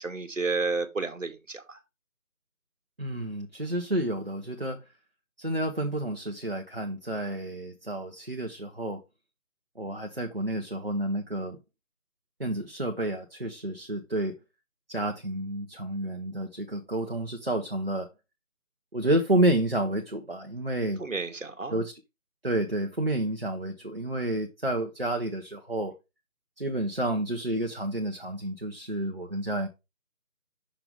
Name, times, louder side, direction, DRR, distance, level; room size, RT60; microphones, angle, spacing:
voice 1, 0.0-1.8 21.0-21.8, right 3 dB, 65° right, 1.3 m, -31 dB
voice 2, 3.0-4.8 5.4-9.0 9.8-11.6 12.4-14.3 14.9-18.1 18.9-21.0 21.7-21.9 22.4-25.9 26.6-29.7, right 1 dB, 45° right, 0.7 m, -30 dB
6.1 x 5.6 x 3.3 m
figure-of-eight pair, 170°, 42 cm